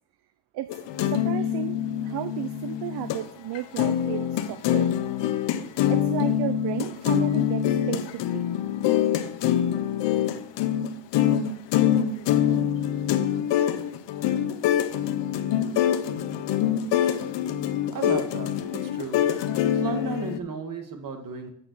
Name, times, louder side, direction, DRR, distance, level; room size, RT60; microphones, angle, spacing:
sound 1, 0.7-3.2 3.6-20.4, left 10 dB, 75° left, 0.8 m, -25 dB
voice 1, 1.1-4.9 5.9-8.5, right 13 dB, 65° right, 12 dB, 0.6 m, -33 dB
voice 2, 17.9-19.2 19.7-21.5, right 4 dB, 50° right, 6 dB, 1.7 m, -34 dB
7.7 x 6.7 x 6.1 m, 0.69 s
cardioid pair, 100°, 43 cm